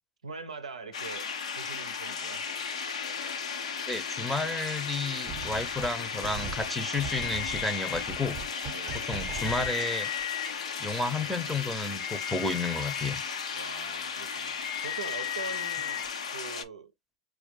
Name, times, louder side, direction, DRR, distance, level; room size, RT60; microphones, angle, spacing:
voice 1, 0.2-1.3 1.5-2.4 8.7-9.2 13.5-16.9, right 4 dB, 90° right, 0.5 m, -43 dB
sound 1, 0.9-16.6, left 6 dB, 80° left, 0.5 m, -35 dB
voice 2, 3.9-8.4 8.9-10.1 10.8-13.2, left 2 dB, 5° left, 0.6 m, -32 dB
sound 2, 5.3-6.0 6.2-9.7, right 7 dB, 35° right, 0.7 m, -40 dB
sound 3, 7.1-8.1 8.8-10.5 11.8-13.1 14.4-16.1, left 10 dB, 55° left, 0.8 m, -36 dB
4.5 x 2.3 x 2.5 m
hypercardioid pair, 95°, 3 cm